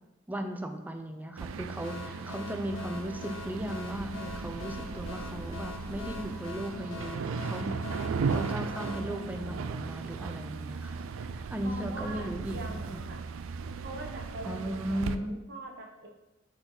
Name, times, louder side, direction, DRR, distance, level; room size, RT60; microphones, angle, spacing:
voice 1, 0.3-12.8 14.4-15.4, equal, 10° right, 5 dB, 0.5 m, -37 dB
sound 1, 1.4-15.2, right 5 dB, 70° right, 0.3 m, -37 dB
sound 2, 1.8-10.2, left 4 dB, 65° left, 0.8 m, -45 dB
sound 3, 4.2-6.7 7.6-8.6, equal, 25° left, 1.1 m, -46 dB
voice 2, 11.5-12.3 12.5-13.2 13.8-16.1, right 2 dB, 55° right, 0 dB, 1.1 m, -42 dB
6.5 x 4.5 x 4.0 m, 0.98 s
head